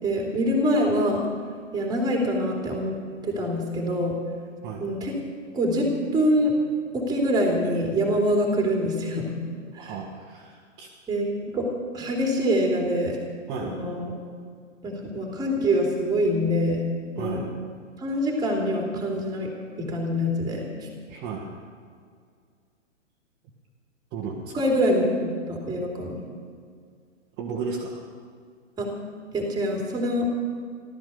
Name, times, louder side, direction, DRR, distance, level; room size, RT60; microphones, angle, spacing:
voice 1, 0.0-1.2 1.7-3.0 3.2-4.1 4.8-5.1 5.5-6.5 6.9-9.3 9.7-9.9 11.1-11.3 11.5-11.7 11.9-13.2 13.6-14.1 14.8-16.8 17.2-17.5 18.0-19.5 19.8-20.9 24.5-26.2 28.8-28.9 29.3-30.3, equal, 10° right, 0 dB, 3.0 m, -25 dB
voice 2, 9.7-10.9 13.5-13.8 17.2-17.5 21.1-21.5 24.1-24.6 27.4-28.0, right 5 dB, 25° right, -3 dB, 1.9 m, -34 dB
15.0 x 13.5 x 7.0 m, 2.1 s
hypercardioid pair, 135°, 38 cm